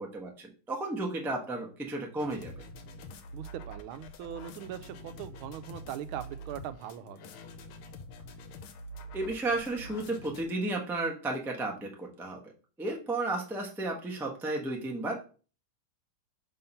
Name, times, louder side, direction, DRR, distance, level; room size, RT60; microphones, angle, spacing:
voice 1, 0.0-2.6 9.1-12.5 12.8-15.2, right 2 dB, ahead, 0 dB, 0.5 m, -33 dB
sound 1, 2.2-10.4, equal, 80° left, 1.6 m, -46 dB
voice 2, 3.3-7.3, right 10 dB, 80° right, 11 dB, 1.4 m, -41 dB
5.7 x 3.7 x 5.4 m, 0.38 s
omnidirectional pair, 2.3 m